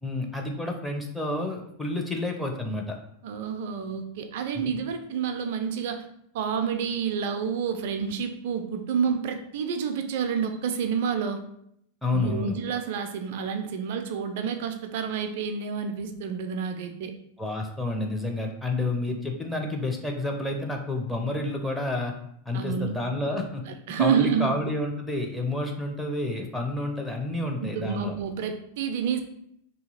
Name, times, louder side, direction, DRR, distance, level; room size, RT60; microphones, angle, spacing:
voice 1, 0.0-3.0 4.5-4.8 12.0-12.6 17.4-22.1 22.5-23.6 24.0-28.2, left 2 dB, 5° left, 1 dB, 0.6 m, -29 dB
voice 2, 3.2-6.0 6.3-11.4 12.1-17.1 22.5-22.9 23.7-24.5 27.6-29.2, right 7 dB, 50° right, 7 dB, 0.4 m, -29 dB
2.8 x 2.8 x 3.9 m, 0.73 s
figure-of-eight pair, 90°, 0 cm